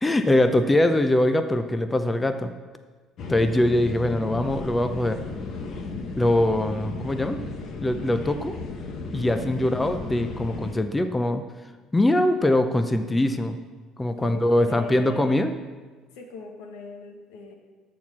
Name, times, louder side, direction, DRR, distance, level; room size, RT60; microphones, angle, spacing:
voice 1, 0.0-2.5 3.3-5.2 6.2-7.4 7.8-8.5 9.1-11.4 11.9-13.6 14.0-15.5, left 1 dB, 10° left, 8 dB, 0.6 m, -22 dB
sound 1, 3.2-10.7, left 3 dB, 50° left, 1.3 m, -35 dB
voice 2, 14.2-15.4 16.1-17.6, left 4 dB, 85° left, 3 dB, 1.5 m, -39 dB
13.0 x 4.6 x 6.2 m, 1.4 s
cardioid pair, 110°, 0 cm